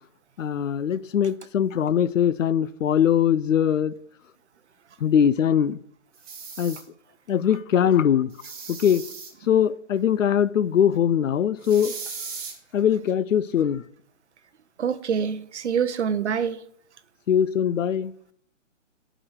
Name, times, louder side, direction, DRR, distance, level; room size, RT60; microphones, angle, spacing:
voice 1, 0.4-3.9 5.0-5.8 6.6-6.8 7.3-8.3 8.7-9.0 9.5-11.9 12.7-13.8 17.3-18.1, left 9 dB, 80° left, 0.6 m, -21 dB
sound 1, 6.1-6.8 8.3-9.3 11.6-12.5, right 5 dB, 30° right, 2.3 m, -37 dB
voice 2, 14.8-16.6, right 7 dB, 60° right, 0.8 m, -25 dB
9.7 x 5.1 x 6.4 m
hypercardioid pair, 165°, 38 cm